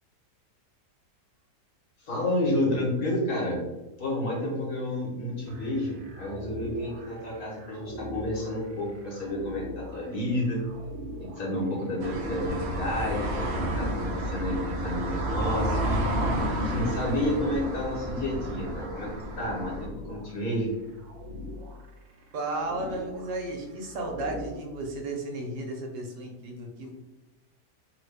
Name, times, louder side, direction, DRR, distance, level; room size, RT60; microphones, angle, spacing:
voice 1, 2.0-3.6 4.0-10.6 11.2-16.0 16.5-19.1 19.4-20.7, left 1 dB, 60° left, -4 dB, 1.5 m, -30 dB
sound 1, 5.5-24.6, equal, 75° right, 1.1 m, -44 dB
sound 2, 12.0-19.9, equal, 60° right, 0.7 m, -30 dB
voice 2, 22.3-26.9, right 2 dB, 90° right, 1 dB, 1.4 m, -34 dB
3.3 x 2.3 x 3.3 m, 1.0 s
omnidirectional pair, 1.8 m